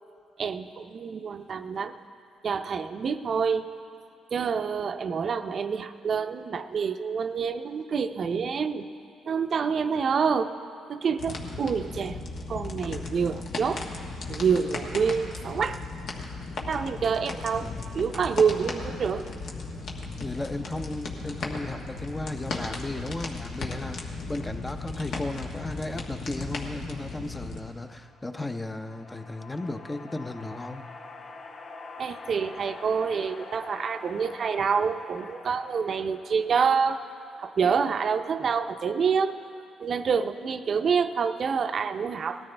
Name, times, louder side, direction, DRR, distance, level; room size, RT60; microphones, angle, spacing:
voice 1, 0.4-1.9 2.4-3.7 4.3-8.8 9.3-10.5 10.9-12.2 12.5-13.8 14.3-15.8 16.7-17.7 17.9-19.3 32.0-37.0 37.4-39.4 39.8-42.4, right 6 dB, 50° right, 9 dB, 0.6 m, -27 dB
sound 1, 11.2-27.6, left 3 dB, 70° left, 1.5 m, -36 dB
voice 2, 20.2-30.9 38.4-38.5, left 2 dB, 15° left, 8 dB, 0.7 m, -35 dB
sound 2, 27.9-37.4, left 3 dB, 55° left, 1.0 m, -46 dB
19.0 x 13.0 x 3.4 m, 2.6 s
cardioid pair, 90°, 0 cm